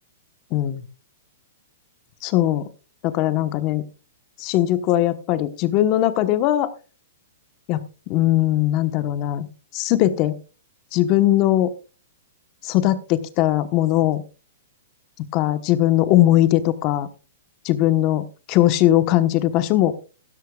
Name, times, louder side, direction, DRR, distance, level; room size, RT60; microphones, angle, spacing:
voice 1, 0.5-0.8 2.2-2.6 3.0-3.8 4.4-6.7 7.7-7.8 8.1-9.5 9.7-10.4 10.9-11.7 12.6-14.2 15.3-17.1 17.6-19.9, left 14 dB, 30° left, 12 dB, 1.0 m, -19 dB
15.5 x 13.0 x 2.3 m, 0.33 s
hypercardioid pair, 160°, 0 cm